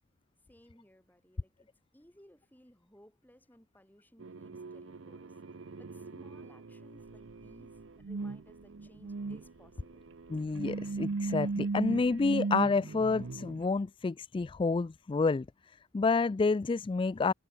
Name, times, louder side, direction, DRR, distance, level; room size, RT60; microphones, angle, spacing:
voice 1, 0.5-1.7 1.9-5.3 5.8-10.1, equal, 10° left, 3.3 m, -61 dB
sound 1, 4.2-13.6, right 3 dB, 75° right, 0.7 m, -38 dB
sound 2, 6.9-12.3, left 1 dB, 65° left, 4.3 m, -65 dB
voice 2, 10.3-15.5 15.9-17.3, left 4 dB, 25° left, 0.3 m, -29 dB
head